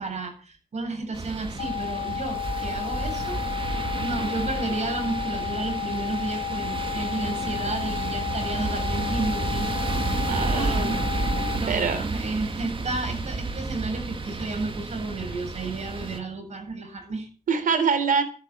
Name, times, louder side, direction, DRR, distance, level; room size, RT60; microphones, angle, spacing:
voice 1, 0.0-3.7 4.0-11.2 11.5-17.3, right 3 dB, 55° right, 5 dB, 7.8 m, -32 dB
sound 1, 1.1-16.2, right 3 dB, 40° right, 2.5 m, -31 dB
sound 2, 1.6-11.6, left 10 dB, 75° left, 0.8 m, -32 dB
voice 2, 10.3-11.0 11.7-12.0 17.5-18.2, right 5 dB, 75° right, 11 dB, 3.7 m, -24 dB
13.5 x 10.5 x 8.5 m, 0.38 s
cardioid pair, 70°, 14 cm